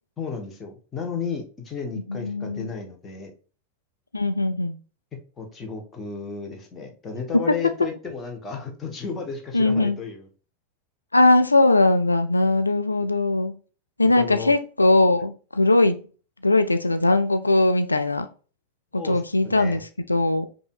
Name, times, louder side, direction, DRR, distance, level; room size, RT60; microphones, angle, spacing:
voice 1, 0.2-3.3 5.4-10.2 14.2-14.5 18.9-19.8, left 5 dB, 20° left, 1.1 m, -33 dB
voice 2, 2.1-2.7 4.1-4.8 7.3-7.7 9.5-10.0 11.1-13.6 14.0-16.0 16.4-18.3 18.9-20.5, left 2 dB, 80° left, 0.3 m, -20 dB
5.4 x 2.7 x 2.4 m
figure-of-eight pair, 90°, 0 cm